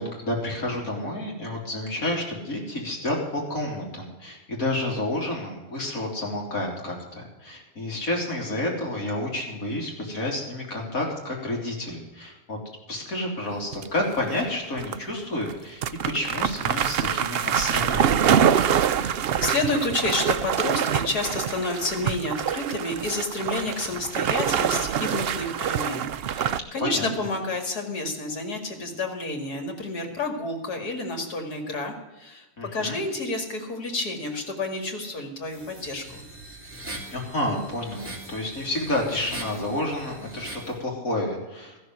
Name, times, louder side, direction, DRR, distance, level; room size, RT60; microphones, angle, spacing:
voice 1, 0.0-12.6 12.9-18.3 26.8-27.1 32.6-33.0 37.1-41.8, left 1 dB, 60° left, -1 dB, 3.6 m, -30 dB
sound 1, 13.7-14.4 14.8-15.0 15.5-15.6 15.8-26.6, right 8 dB, 70° right, 0.5 m, -25 dB
voice 2, 18.8-32.5 32.7-36.2, left 2 dB, 90° left, 3 dB, 2.8 m, -30 dB
sound 2, 35.5-40.8, right 2 dB, 10° right, 3.3 m, -41 dB
14.0 x 6.9 x 9.5 m, 1.1 s
omnidirectional pair, 1.6 m